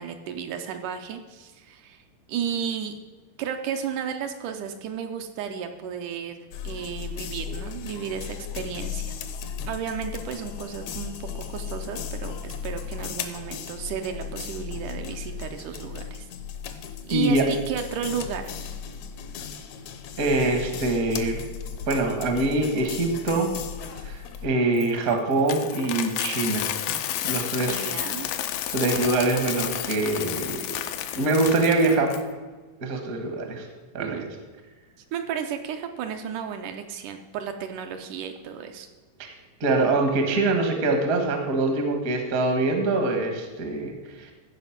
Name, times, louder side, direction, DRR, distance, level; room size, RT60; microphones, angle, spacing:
voice 1, 0.0-2.0 2.3-2.9 3.4-6.4 6.6-9.1 9.6-16.3 17.1-18.5 27.7-28.4 34.0-34.3 35.1-38.9, right 8 dB, 75° right, 5 dB, 2.0 m, -33 dB
sound 1, 6.5-24.5, left 7 dB, 70° left, 1.8 m, -36 dB
voice 2, 17.1-17.4 20.2-21.4 21.9-23.5 24.0-24.1 24.4-26.9 27.2-28.0 28.7-30.6 31.1-32.1 32.8-33.6 33.9-34.3 39.6-43.9, right 2 dB, 50° right, 4 dB, 1.0 m, -24 dB
Coin (dropping), 24.8-32.2, left 11 dB, 85° left, 2.3 m, -31 dB
15.0 x 5.2 x 5.8 m, 1.3 s
omnidirectional pair, 3.9 m